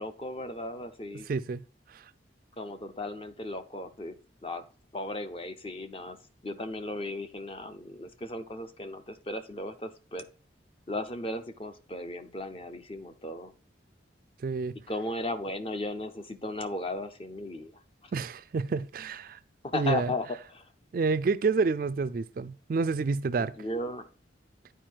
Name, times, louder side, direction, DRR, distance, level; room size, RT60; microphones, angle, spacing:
voice 1, 0.0-1.3 2.6-4.1 4.4-4.6 4.9-6.2 6.4-10.3 10.9-13.5 14.9-17.7 18.0-18.1 19.6-20.7 23.4-24.1, left 2 dB, 30° left, 0.6 m, -36 dB
voice 2, 1.3-1.6 1.9-2.0 14.4-14.7 18.1-19.4 19.7-20.1 20.9-23.5, right 4 dB, 50° right, 0.3 m, -28 dB
9.2 x 4.6 x 4.5 m
head